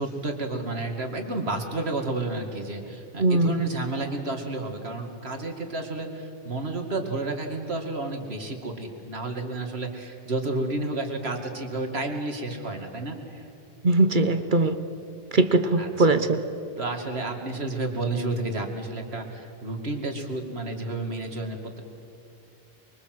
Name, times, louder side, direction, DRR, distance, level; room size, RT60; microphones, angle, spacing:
voice 1, 0.0-13.5 15.8-16.1 16.8-21.8, right 2 dB, 90° right, 4 dB, 2.7 m, -31 dB
voice 2, 3.2-3.6 13.8-14.8 15.3-16.4, right 2 dB, 55° right, 11 dB, 1.2 m, -21 dB
25.0 x 23.5 x 7.9 m, 2.7 s
omnidirectional pair, 1.0 m